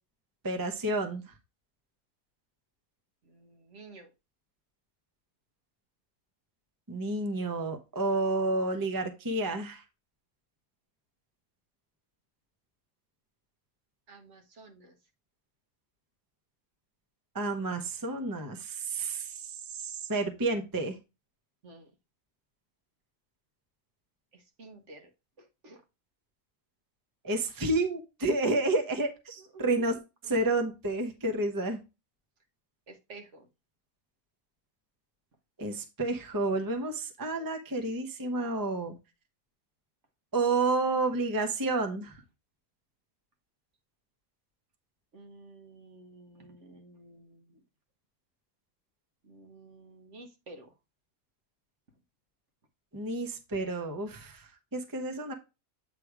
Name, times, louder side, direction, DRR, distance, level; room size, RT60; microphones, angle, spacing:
voice 1, 0.4-1.2 6.9-9.8 17.3-21.0 27.2-29.9 30.2-31.8 35.6-38.9 40.3-42.2 52.9-55.3, right 2 dB, 15° right, 5 dB, 0.8 m, -30 dB
voice 2, 3.3-4.1 14.1-14.9 21.6-21.9 24.3-25.1 25.4-25.8 29.4-30.0 32.9-33.5 45.1-47.6 49.2-50.7, right 2 dB, 55° right, 5 dB, 1.5 m, -51 dB
8.4 x 3.2 x 4.8 m, 0.26 s
omnidirectional pair, 1.5 m